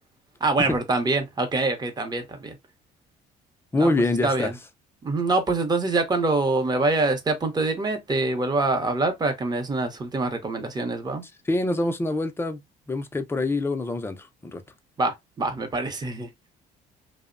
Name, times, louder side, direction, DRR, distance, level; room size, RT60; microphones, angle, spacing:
voice 1, 0.4-2.6 3.8-3.9 4.2-4.5 5.0-11.2 15.0-16.3, right 3 dB, 25° right, 0.7 m, -25 dB
voice 2, 3.7-4.5 11.5-12.6 12.9-14.6, left 2 dB, 15° left, 0.4 m, -25 dB
2.6 x 2.0 x 2.5 m
cardioid pair, 110°, 17 cm